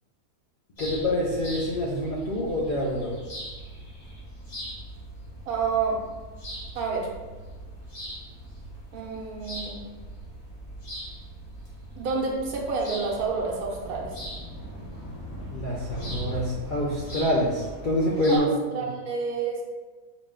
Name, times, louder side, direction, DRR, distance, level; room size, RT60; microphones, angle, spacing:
sound 1, 0.8-18.4, equal, 85° left, 2.0 m, -40 dB
voice 1, 0.8-3.1 15.5-18.5, left 1 dB, 60° left, -5 dB, 0.5 m, -26 dB
voice 2, 5.5-6.0 6.7-7.1 8.9-9.8 12.0-14.1 18.3-19.6, right 4 dB, 85° right, -1 dB, 1.2 m, -29 dB
4.9 x 2.2 x 3.5 m, 1.3 s
omnidirectional pair, 1.5 m